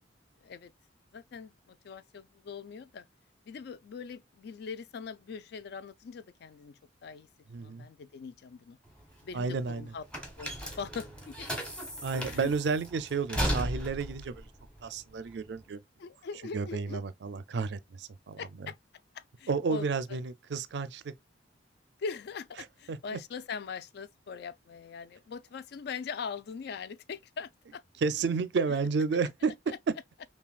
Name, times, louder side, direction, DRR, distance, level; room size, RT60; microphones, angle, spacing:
voice 1, 1.1-3.0 3.5-7.3 7.6-8.8 9.2-10.0 10.4-11.5 12.3-12.5 16.0-17.0 18.4-18.8 19.1-20.2 22.0-27.8 28.7-28.8 29.7-29.8, left 5 dB, 60° left, 0.4 m, -41 dB
voice 2, 7.5-7.9 9.3-9.9 12.0-14.4 14.8-15.8 16.5-18.4 19.5-21.1 22.9-23.2 28.0-29.5, right 4 dB, 65° right, 0.4 m, -31 dB
sound 1, 8.9-15.6, equal, 5° left, 0.9 m, -36 dB
5.7 x 2.2 x 2.3 m
head